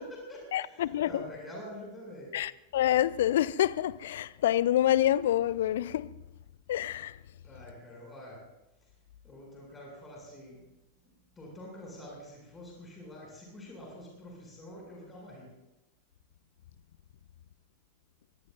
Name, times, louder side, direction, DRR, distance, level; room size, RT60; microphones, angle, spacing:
voice 1, 0.0-2.4 7.4-8.5 8.8-8.9 9.2-10.6 11.4-15.5, left 1 dB, 15° left, 7.1 m, -46 dB
voice 2, 0.5-1.2 2.3-6.1 6.7-7.2, left 12 dB, 60° left, 0.5 m, -27 dB
24.5 x 21.5 x 2.6 m
figure-of-eight pair, 90°, 0 cm